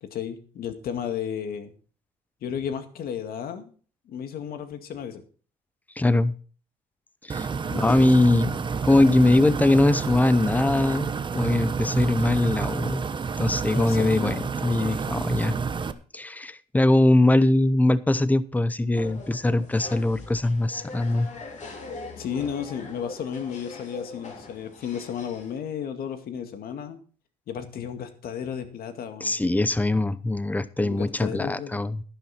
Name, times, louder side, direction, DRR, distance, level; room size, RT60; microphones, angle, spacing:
voice 1, 0.0-1.7 2.4-3.7 4.1-5.2 7.6-8.3 13.7-14.4 22.2-27.0 27.5-29.4 30.8-31.8, left 8 dB, 60° left, 7 dB, 2.1 m, -33 dB
voice 2, 6.0-6.3 7.3-7.5 7.7-8.6 8.8-13.0 13.4-15.5 16.1-21.3 29.2-32.0, left 2 dB, 10° left, 16 dB, 0.7 m, -22 dB
sound 1, 7.3-15.9, right 5 dB, 30° right, 0.9 m, -29 dB
sound 2, 18.9-25.6, left 3 dB, 45° left, 4.3 m, -41 dB
11.5 x 10.5 x 4.3 m, 0.40 s
cardioid pair, 110°, 17 cm